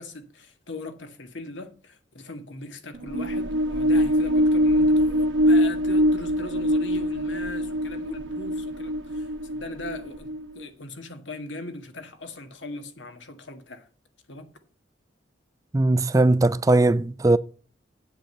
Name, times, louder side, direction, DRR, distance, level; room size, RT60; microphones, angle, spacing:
voice 1, 0.0-13.9 14.3-14.5, left 2 dB, 80° left, 1.7 m, -39 dB
sound 1, 2.9-10.6, equal, 85° right, 0.9 m, -23 dB
voice 2, 15.7-17.4, right 2 dB, 20° right, 0.4 m, -19 dB
8.6 x 7.9 x 6.6 m
head